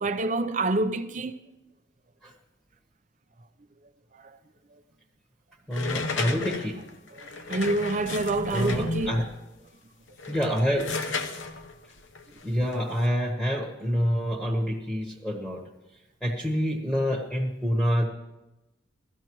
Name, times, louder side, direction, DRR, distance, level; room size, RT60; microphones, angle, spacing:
voice 1, 0.0-1.3 7.1-9.2, right 2 dB, 40° right, 0.6 m, -27 dB
sound 1, 5.7-9.4 10.1-13.0, left 3 dB, 85° left, 0.9 m, -33 dB
voice 2, 5.7-6.8 8.5-9.3 10.3-10.9 12.4-15.6 16.2-18.1, equal, ahead, 1.1 m, -27 dB
17.0 x 14.0 x 3.1 m
head